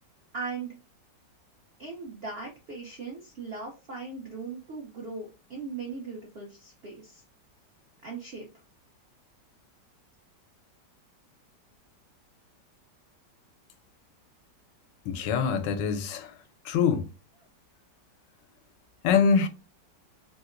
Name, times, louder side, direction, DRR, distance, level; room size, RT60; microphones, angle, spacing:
voice 1, 0.3-0.8 1.8-7.2 8.0-8.5, right 4 dB, 65° right, 0.6 m, -39 dB
voice 2, 15.1-16.3 16.7-17.1 19.0-19.5, left 6 dB, 90° left, 1.3 m, -24 dB
3.3 x 2.8 x 2.4 m
omnidirectional pair, 1.9 m